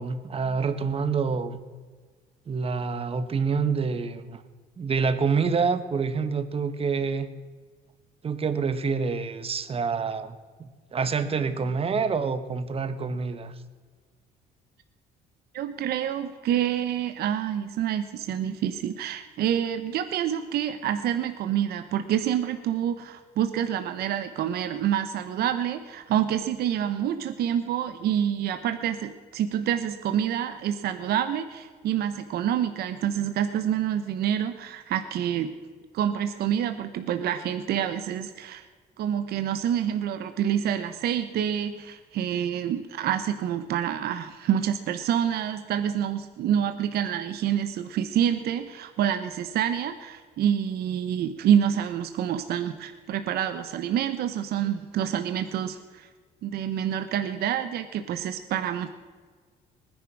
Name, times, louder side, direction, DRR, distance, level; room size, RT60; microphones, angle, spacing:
voice 1, 0.0-1.6 2.5-4.4 4.8-7.3 8.2-13.5, right 5 dB, 35° right, 11 dB, 1.4 m, -27 dB
voice 2, 15.5-35.5 35.9-38.7 39.0-56.1 56.4-58.9, right 9 dB, 70° right, 9 dB, 1.1 m, -27 dB
19.5 x 10.5 x 6.2 m, 1.5 s
cardioid pair, 110°, 17 cm